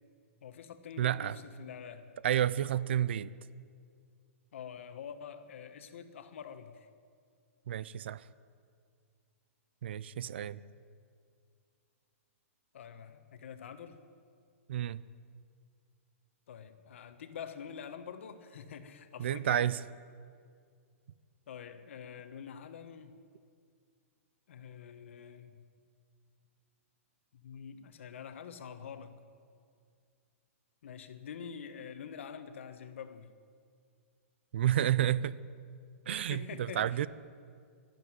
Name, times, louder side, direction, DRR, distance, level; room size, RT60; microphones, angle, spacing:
voice 1, 0.4-2.2 4.5-6.9 12.7-14.0 16.5-19.7 21.5-23.2 24.5-25.6 27.3-29.2 30.8-33.3 36.1-37.1, left 7 dB, 55° left, 10 dB, 1.2 m, -46 dB
voice 2, 1.0-1.4 2.2-3.3 7.7-8.2 9.8-10.6 14.7-15.0 19.2-19.8 34.5-35.3 36.1-37.1, right 11 dB, 50° right, 18 dB, 0.4 m, -30 dB
12.5 x 12.0 x 9.5 m, 2.2 s
hypercardioid pair, 175°, 8 cm